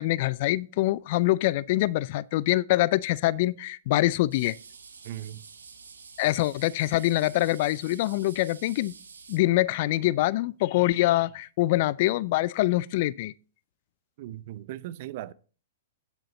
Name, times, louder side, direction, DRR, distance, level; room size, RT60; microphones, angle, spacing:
voice 1, 0.0-4.6 6.2-8.9 9.3-13.3, left 17 dB, 50° left, 0.4 m, -24 dB
sound 1, 4.3-9.4, right 5 dB, 80° right, 1.2 m, -48 dB
voice 2, 5.0-5.4 14.2-15.3, right 13 dB, 50° right, 0.5 m, -38 dB
9.4 x 7.7 x 4.1 m
figure-of-eight pair, 110°, 0 cm